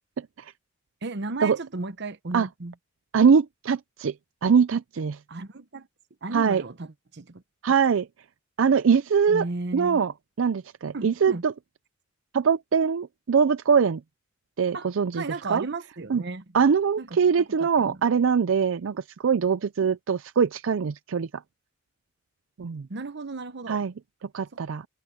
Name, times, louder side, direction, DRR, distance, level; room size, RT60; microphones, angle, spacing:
voice 1, 1.0-2.7 5.3-5.9 6.2-7.4 9.3-10.0 10.9-11.5 14.7-16.4 17.0-17.2 17.6-18.0 19.8-19.9 22.9-23.8 24.5-24.6, right 3 dB, 60° right, 1.0 m, -35 dB
voice 2, 3.1-4.1 4.4-5.2 6.3-6.6 7.6-8.1 8.6-9.4 9.7-10.1 10.4-11.5 12.3-14.0 14.6-15.2 15.5-15.6 16.1-16.2 16.5-21.3 22.6-22.9 23.7-23.9 24.3-24.9, right 6 dB, 75° right, 0.5 m, -22 dB
head